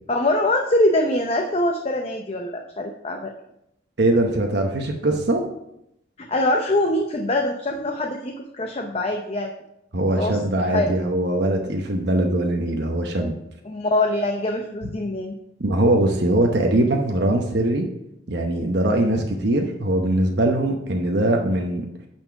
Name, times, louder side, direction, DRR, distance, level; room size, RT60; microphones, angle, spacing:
voice 1, 0.1-3.3 6.2-9.5 10.2-10.9 13.6-15.3, left 1 dB, 30° left, 3 dB, 0.6 m, -23 dB
voice 2, 4.0-5.4 9.9-13.3 15.6-17.9 18.3-21.9, right 1 dB, 55° right, 2 dB, 0.9 m, -21 dB
9.3 x 4.4 x 5.7 m, 0.81 s
head